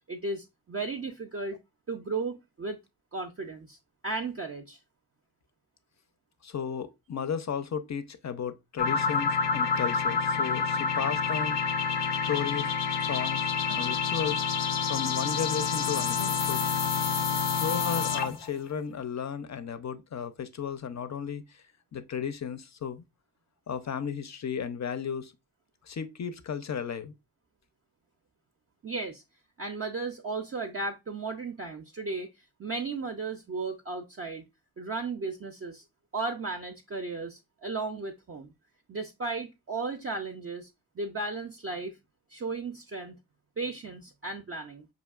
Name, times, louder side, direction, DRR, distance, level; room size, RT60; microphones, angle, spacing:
voice 1, 0.1-1.6 1.9-2.8 3.1-3.8 4.0-4.8 28.8-29.2 29.6-32.3 32.6-34.4 34.8-35.8 36.1-38.5 38.9-40.7 41.0-42.0 42.3-43.2 43.6-44.9, right 3 dB, 35° right, 0.4 m, -35 dB
voice 2, 6.4-11.6 12.3-12.7 13.0-14.4 14.9-16.6 17.6-21.6 21.9-23.0 23.7-25.3 25.8-27.1, left 7 dB, 40° left, 0.5 m, -34 dB
sound 1, 8.8-18.5, left 6 dB, 90° left, 0.6 m, -28 dB
5.1 x 2.6 x 2.3 m
wide cardioid pair, 60°, 42 cm